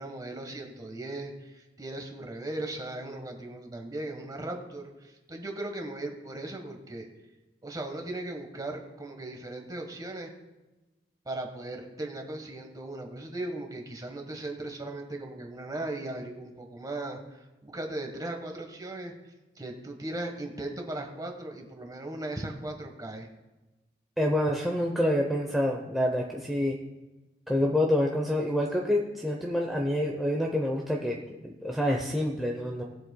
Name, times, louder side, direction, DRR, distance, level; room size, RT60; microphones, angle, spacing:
voice 1, 0.0-7.1 7.6-10.3 11.2-19.1 19.6-23.3, right 2 dB, 20° right, 3 dB, 1.3 m, -38 dB
voice 2, 24.2-26.8 27.5-32.8, left 1 dB, ahead, -1 dB, 0.7 m, -27 dB
19.5 x 7.6 x 2.2 m, 1.1 s
head